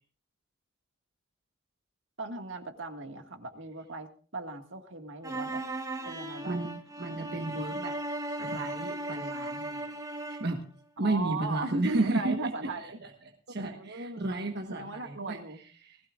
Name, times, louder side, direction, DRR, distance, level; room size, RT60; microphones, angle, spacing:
voice 1, 2.2-5.6 6.1-6.7 11.0-13.0 13.6-14.3 14.7-15.6, right 3 dB, 70° right, 5 dB, 1.9 m, -38 dB
sound 1, 5.2-10.6, right 1 dB, 15° right, 1.4 m, -37 dB
voice 2, 6.4-8.0 8.4-9.8 10.3-10.6 11.0-13.1 13.5-15.4 15.8-16.0, right 2 dB, 55° right, 3 dB, 1.3 m, -33 dB
20.0 x 16.0 x 2.5 m, 0.42 s
head